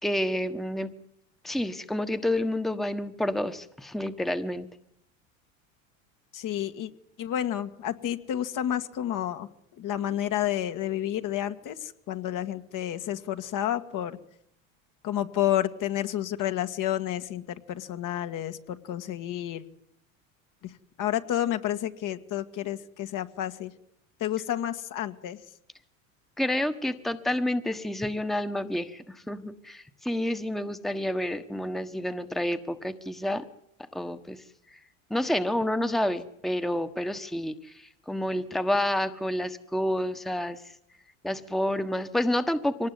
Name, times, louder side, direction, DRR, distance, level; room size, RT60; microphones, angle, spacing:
voice 1, 0.0-0.9 1.4-4.7 26.4-33.5 33.9-34.8 35.1-40.7 41.2-42.9, left 1 dB, ahead, 10 dB, 1.3 m, -29 dB
voice 2, 6.3-6.9 7.2-9.5 9.8-14.2 15.0-17.4 17.7-19.6 20.6-20.7 21.0-23.7 24.2-25.4, left 11 dB, 50° left, 8 dB, 1.9 m, -30 dB
24.0 x 19.0 x 9.6 m, 0.77 s
hypercardioid pair, 95°, 41 cm